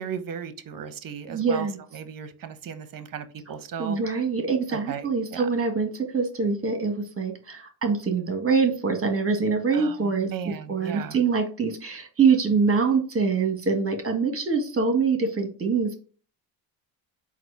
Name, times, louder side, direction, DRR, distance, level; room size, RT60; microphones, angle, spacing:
voice 1, 0.0-1.7 1.9-4.0 4.7-5.5 9.7-11.2, right 8 dB, 45° right, 11 dB, 0.8 m, -36 dB
voice 2, 1.3-1.8 3.8-15.9, right 5 dB, 25° right, 5 dB, 1.4 m, -24 dB
4.1 x 2.5 x 4.5 m, 0.39 s
supercardioid pair, 65°, 49 cm